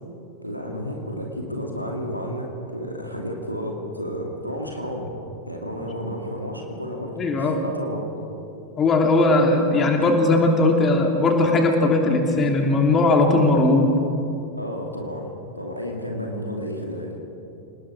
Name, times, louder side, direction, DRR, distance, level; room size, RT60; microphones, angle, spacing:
voice 1, 0.4-5.1 5.5-8.1 14.6-17.2, equal, 90° left, 0 dB, 2.6 m, -31 dB
voice 2, 7.2-7.6 8.8-13.9, left 2 dB, 25° left, 2 dB, 3.1 m, -18 dB
29.0 x 19.5 x 4.9 m, 2.8 s
figure-of-eight pair, 90°, 0 cm